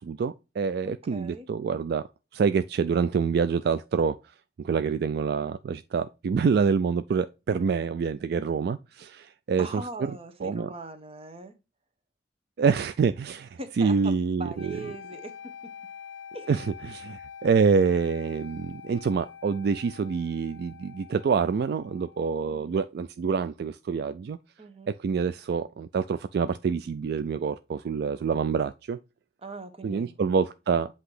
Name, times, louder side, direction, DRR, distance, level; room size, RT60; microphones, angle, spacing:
voice 1, 0.1-2.0 2.4-4.1 4.7-8.8 9.5-9.8 10.4-10.7 12.6-13.4 13.8-14.7 16.5-17.0 17.4-24.4 25.0-26.0 26.3-29.0 29.8-30.9, right 5 dB, 60° right, 0.3 m, -26 dB
voice 2, 0.8-1.5 9.6-11.5 13.6-15.3 15.6-15.7 16.3-16.5 22.4-22.8 24.6-24.9 29.4-30.1, right 2 dB, 35° right, 1.0 m, -41 dB
sound 1, 14.5-22.6, left 7 dB, 85° left, 0.6 m, -46 dB
7.9 x 2.9 x 4.8 m
head